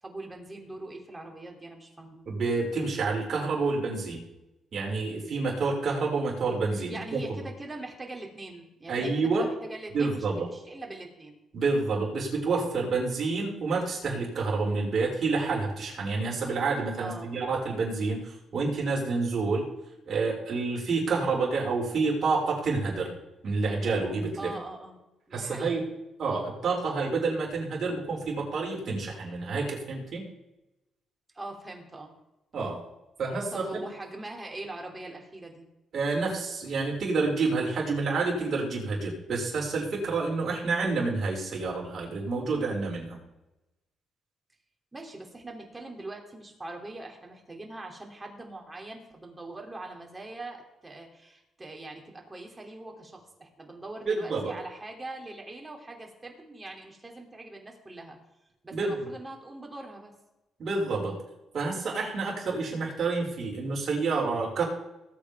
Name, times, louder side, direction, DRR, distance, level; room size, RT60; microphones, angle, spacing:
voice 1, 0.0-2.2 6.9-11.4 17.0-17.3 24.4-25.0 25.3-25.8 31.3-32.1 33.5-35.7 44.9-58.2 58.6-60.1, right 2 dB, 20° right, 1 dB, 3.0 m, -42 dB
voice 2, 2.3-4.2 4.7-7.2 8.9-9.4 9.9-10.5 11.5-19.7 20.1-23.1 23.4-24.5 25.3-25.8 26.2-30.2 32.5-32.8 33.2-33.8 35.9-43.2 54.1-54.5 58.7-59.1 60.6-61.2 61.5-64.6, right 4 dB, 50° right, -3 dB, 5.6 m, -28 dB
19.0 x 8.3 x 3.6 m, 0.93 s
cardioid pair, 90°, 0 cm